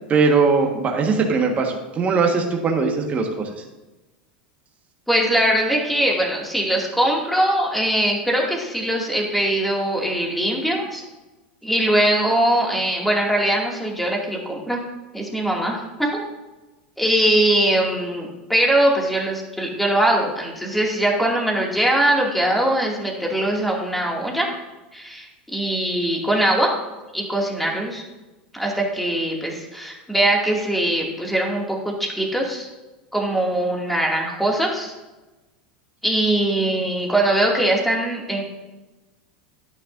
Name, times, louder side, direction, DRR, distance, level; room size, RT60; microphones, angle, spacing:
voice 1, 0.1-3.6, right 4 dB, 30° right, 1 dB, 1.5 m, -20 dB
voice 2, 5.1-11.0 11.6-14.8 15.1-16.2 17.0-24.5 24.9-26.7 27.1-28.0 28.5-32.7 33.1-34.9 36.0-38.4, right 1 dB, ahead, -1 dB, 2.4 m, -21 dB
11.0 x 10.0 x 2.7 m, 1.1 s
hypercardioid pair, 100°, 5 cm